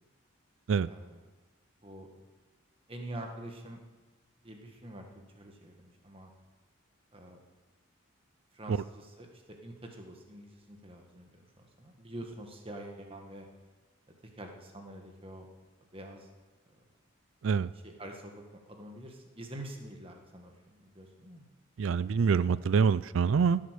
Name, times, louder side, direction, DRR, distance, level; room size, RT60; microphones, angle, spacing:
voice 1, 0.9-1.2 1.8-2.2 2.9-3.8 4.4-5.0 5.3-6.3 7.1-7.4 8.5-13.5 14.4-15.5 15.9-16.3 16.7-16.8 17.7-21.5, right 1 dB, 25° right, 2 dB, 1.6 m, -46 dB
voice 2, 21.8-23.6, right 6 dB, 70° right, 18 dB, 0.4 m, -25 dB
16.0 x 7.9 x 6.7 m, 1.2 s
head